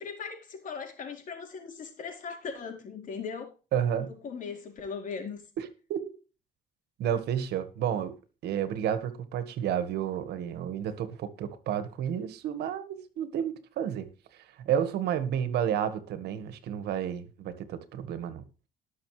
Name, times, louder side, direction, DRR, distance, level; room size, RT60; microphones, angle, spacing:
voice 1, 0.0-3.5 4.0-5.4, left 5 dB, 50° left, 4.3 m, -39 dB
voice 2, 3.7-4.1 5.6-6.0 7.0-8.1 8.4-14.1 14.3-18.4, right 9 dB, 75° right, 1.7 m, -31 dB
20.0 x 6.7 x 3.3 m
cardioid pair, 110°, 17 cm